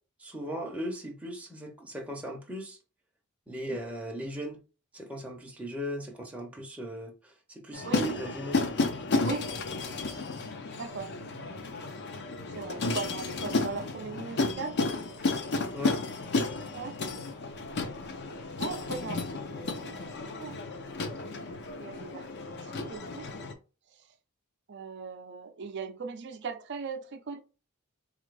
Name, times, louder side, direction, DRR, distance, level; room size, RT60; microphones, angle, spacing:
voice 1, 0.2-2.8 3.5-4.6 4.9-8.6 15.7-16.0, equal, 5° right, 0.6 m, -37 dB
sound 1, 7.7-23.5, left 3 dB, 50° left, 0.6 m, -32 dB
voice 2, 10.8-11.1 12.5-14.8 16.7-17.0 18.6-20.6 21.8-23.3 23.9-24.1 24.7-27.4, right 4 dB, 55° right, 0.5 m, -39 dB
4.2 x 2.5 x 3.2 m
head